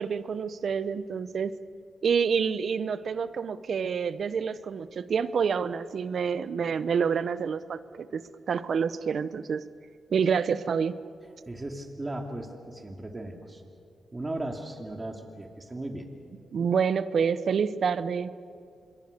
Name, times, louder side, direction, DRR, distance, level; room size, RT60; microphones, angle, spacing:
voice 1, 0.0-1.5 2.0-9.6 10.1-11.0 16.5-18.4, right 6 dB, 65° right, 15 dB, 0.9 m, -28 dB
voice 2, 11.5-13.6 14.1-16.1, right 1 dB, 25° right, 3 dB, 2.8 m, -37 dB
27.0 x 22.5 x 6.9 m, 2.4 s
cardioid pair, 60°, 0 cm